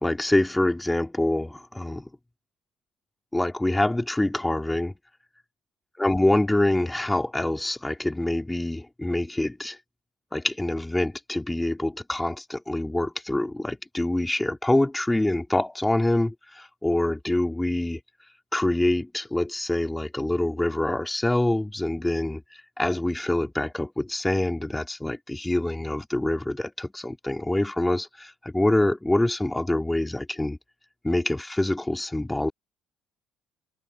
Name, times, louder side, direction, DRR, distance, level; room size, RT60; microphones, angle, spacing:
voice 1, 0.0-2.0 3.3-4.9 6.0-9.8 10.3-18.0 18.5-22.4 22.8-30.6 31.0-32.5, left 1 dB, 10° left, 3.8 m, -25 dB
hypercardioid pair, 55°, 0 cm